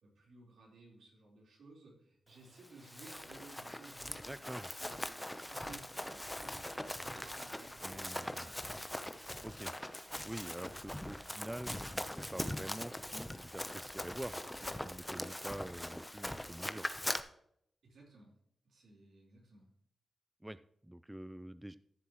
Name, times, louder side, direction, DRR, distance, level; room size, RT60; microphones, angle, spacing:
voice 1, 0.0-8.7 17.8-18.3 18.6-19.7, right 2 dB, 80° right, -2 dB, 4.0 m, -57 dB
Run, 2.6-17.2, left 1 dB, 10° left, 0.8 m, -42 dB
voice 2, 4.3-4.7 7.8-8.5 9.4-9.7 10.2-14.4 14.8-16.9 20.4-21.8, right 1 dB, 10° right, 15 dB, 0.3 m, -46 dB
13.5 x 7.2 x 3.1 m, 0.71 s
cardioid pair, 80°, 0 cm